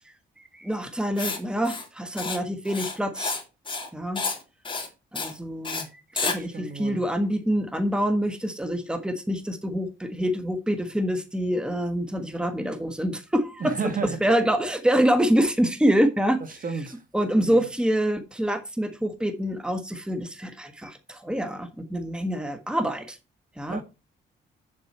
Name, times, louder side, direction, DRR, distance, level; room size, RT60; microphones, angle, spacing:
voice 1, 0.5-3.4 3.9-4.2 5.1-5.9 6.2-13.7 14.2-16.4 17.1-23.2 23.6-23.8, equal, 5° right, 1.4 m, -26 dB
Writing, 1.2-1.4 1.6-1.9 2.2-2.4 2.6-3.4 3.7-3.9 4.1-4.4 4.6-4.9 5.1-5.3 5.6-5.8 6.2-6.4, left 3 dB, 25° left, 3.0 m, -30 dB
voice 2, 6.3-7.0 13.6-14.2 16.5-17.0 17.4-17.7 23.7-23.8, right 5 dB, 45° right, 1.6 m, -33 dB
7.5 x 7.4 x 4.3 m
cardioid pair, 90°, 20 cm